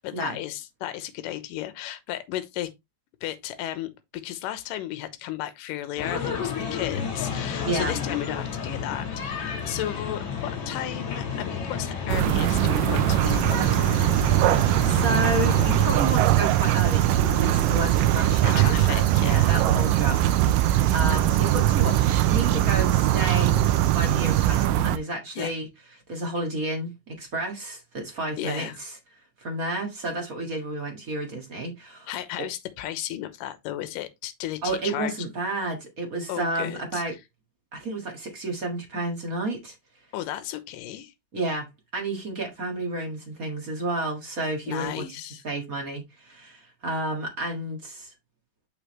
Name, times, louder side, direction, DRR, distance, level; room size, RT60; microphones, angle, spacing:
voice 1, 0.0-2.7 3.2-14.0 18.4-19.5 25.4-25.5 28.4-28.8 32.1-35.1 36.3-37.0 40.1-41.1 44.7-45.4, left 13 dB, 75° left, 2.4 m, -34 dB
sound 1, 6.0-16.1, left 6 dB, 55° left, 2.9 m, -31 dB
voice 2, 7.6-8.0 14.4-23.6 23.9-25.7 26.1-28.9 29.4-32.1 32.4-32.5 34.6-37.1 37.7-39.7 41.3-41.7 41.9-45.0 45.4-48.1, right 2 dB, 40° right, 1.3 m, -31 dB
sound 2, 12.1-25.0, right 13 dB, 80° right, 2.2 m, -21 dB
sound 3, 13.2-24.7, right 6 dB, 60° right, 2.2 m, -40 dB
6.7 x 5.9 x 3.1 m
omnidirectional pair, 4.1 m